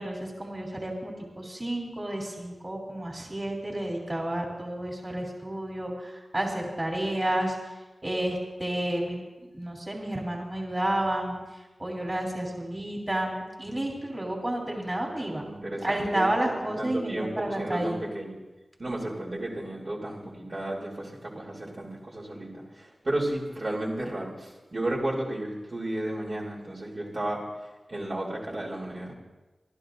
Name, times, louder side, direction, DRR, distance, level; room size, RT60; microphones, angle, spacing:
voice 1, 0.0-9.2 9.5-11.4 11.8-15.4 15.8-18.0, right 1 dB, 30° right, -1 dB, 3.2 m, -31 dB
voice 2, 15.4-16.3 16.8-18.4 18.8-27.4 27.9-29.1, right 1 dB, 55° right, -4 dB, 3.1 m, -33 dB
29.5 x 12.0 x 2.6 m, 1.1 s
cardioid pair, 45°, 0 cm